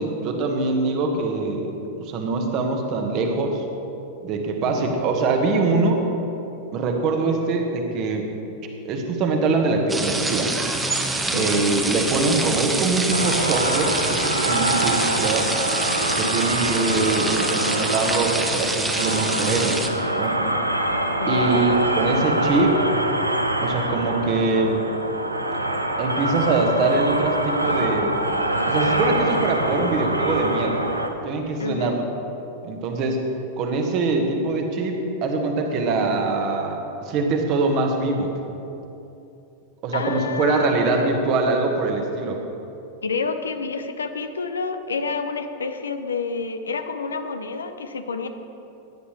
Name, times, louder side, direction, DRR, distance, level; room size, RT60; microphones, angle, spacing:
voice 1, 0.0-1.7 2.0-3.6 4.2-6.0 6.7-8.3 8.8-10.5 11.3-15.5 16.1-19.8 20.2-20.4 21.3-22.9 23.6-24.8 26.0-28.1 28.7-30.8 31.2-32.0 32.6-33.2 33.6-38.3 39.8-42.4, right 3 dB, 40° right, 3 dB, 1.4 m, -23 dB
voice 2, 4.6-5.0 11.3-11.8 16.2-16.6 21.2-21.9 31.6-32.0 39.9-41.5 43.0-48.3, left 4 dB, 70° left, 8 dB, 0.7 m, -29 dB
sound 1, 9.9-19.9, right 2 dB, 10° right, 1.0 m, -26 dB
sound 2, 13.1-31.1, right 1 dB, 85° right, 0.7 m, -25 dB
16.0 x 9.8 x 3.3 m, 2.9 s
figure-of-eight pair, 90°, 0 cm